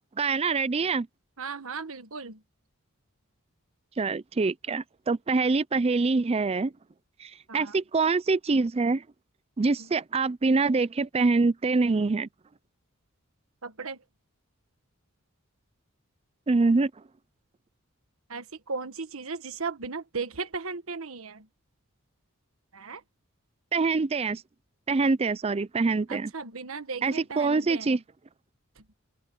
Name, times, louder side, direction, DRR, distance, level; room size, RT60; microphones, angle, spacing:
voice 1, 0.2-1.1 4.0-6.7 7.2-9.0 9.6-12.3 16.5-16.9 23.7-24.4 24.9-26.3 27.0-28.0, right 3 dB, 30° right, 0.4 m, -25 dB
voice 2, 1.4-2.4 7.5-7.8 9.8-9.9 13.6-14.0 18.3-21.5 22.7-23.0 26.1-28.0 28.8-28.9, right 4 dB, 70° right, 1.5 m, -36 dB
head